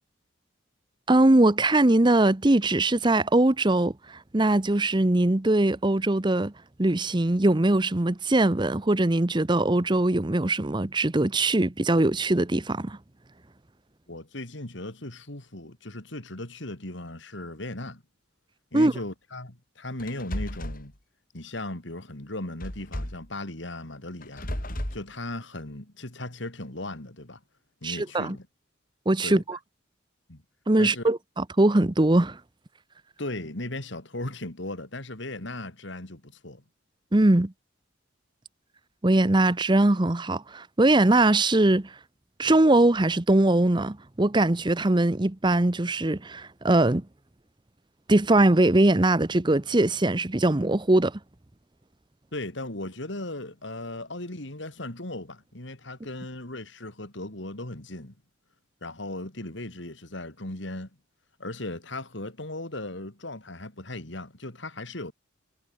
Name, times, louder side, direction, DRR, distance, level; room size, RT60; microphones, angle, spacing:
voice 1, 1.1-6.5 6.8-13.0 18.7-18.9 27.8-28.4 29.1-29.6 30.7-32.4 37.1-37.5 39.0-41.9 42.4-47.1 48.1-51.2, right 2 dB, 25° right, 0.8 m, -21 dB
voice 2, 14.1-18.0 18.7-20.9 21.3-24.5 24.9-27.4 27.8-28.5 29.2-29.4 30.3-30.4 30.8-31.0 33.2-36.6 52.3-58.1 58.8-60.9 61.4-65.1, left 1 dB, 65° left, 3.3 m, -37 dB
sound 1, 20.0-20.8 22.6-23.3 24.2-25.0, equal, 45° left, 4.4 m, -33 dB
head